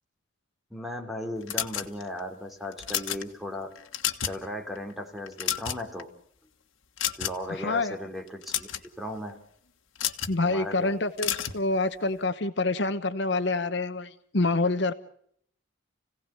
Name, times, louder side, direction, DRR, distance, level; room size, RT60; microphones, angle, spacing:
voice 1, 0.7-3.7 4.2-6.1 7.1-9.4 10.4-11.0, left 1 dB, ahead, 3 dB, 2.9 m, -36 dB
sound 1, 1.5-2.2 2.7-3.2 3.8-4.4 4.8-4.9 5.3-6.0 7.0-7.5 8.3-8.9 10.0-10.4 11.2-11.6, left 11 dB, 90° left, 1.5 m, -30 dB
voice 2, 7.5-7.9 10.3-14.9, left 3 dB, 60° left, 10 dB, 1.0 m, -27 dB
29.5 x 17.0 x 6.8 m, 0.67 s
head